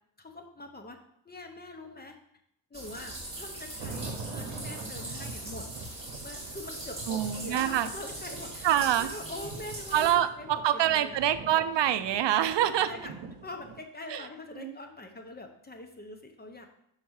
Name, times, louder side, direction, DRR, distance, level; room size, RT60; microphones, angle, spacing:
voice 1, 0.2-1.0 1.2-2.2 2.7-5.7 6.2-11.2 12.4-13.1 13.4-16.7, left 2 dB, 20° left, 5 dB, 1.0 m, -44 dB
sound 1, 2.7-10.1, right 1 dB, 10° right, 2.5 m, -41 dB
sound 2, 3.8-13.8, right 4 dB, 80° right, 0.9 m, -44 dB
voice 2, 7.1-7.9 8.6-9.1 9.9-12.9 14.1-14.2 14.6-14.7, right 11 dB, 60° right, 12 dB, 0.6 m, -26 dB
5.7 x 4.5 x 6.4 m, 0.73 s
cardioid pair, 115°, 49 cm